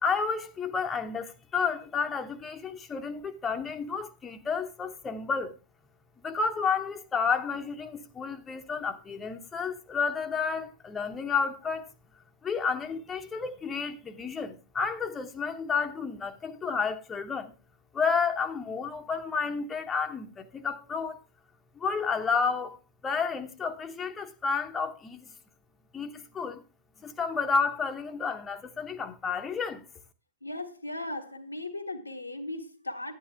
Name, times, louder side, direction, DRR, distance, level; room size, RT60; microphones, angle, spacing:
voice 1, 0.0-5.5 6.2-11.8 12.4-17.5 17.9-21.2 21.8-22.8 23.0-25.3 25.9-26.6 27.0-29.8, left 5 dB, 20° left, 0.8 m, -31 dB
voice 2, 30.4-33.1, left 2 dB, 85° left, 1.1 m, -37 dB
10.0 x 9.6 x 3.4 m
figure-of-eight pair, 90°, 0 cm